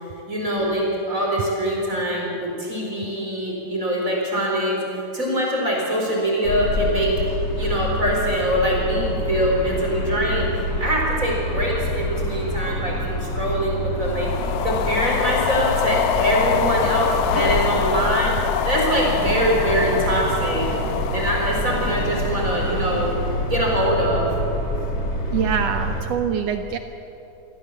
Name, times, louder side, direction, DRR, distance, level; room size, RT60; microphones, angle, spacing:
voice 1, 0.3-7.1 7.6-10.5 10.8-14.3 14.6-20.7 21.1-23.1 23.5-24.3, equal, 25° right, -2 dB, 4.7 m, -23 dB
sound 1, 6.4-26.0, equal, 40° left, 2.1 m, -27 dB
sound 2, 14.0-23.5, left 13 dB, 85° left, 2.2 m, -26 dB
voice 2, 17.7-18.3 19.4-19.5 19.9-21.2 21.7-23.1 25.3-26.8, right 8 dB, 80° right, 7 dB, 1.4 m, -28 dB
23.5 x 15.5 x 7.5 m, 2.9 s
omnidirectional pair, 3.8 m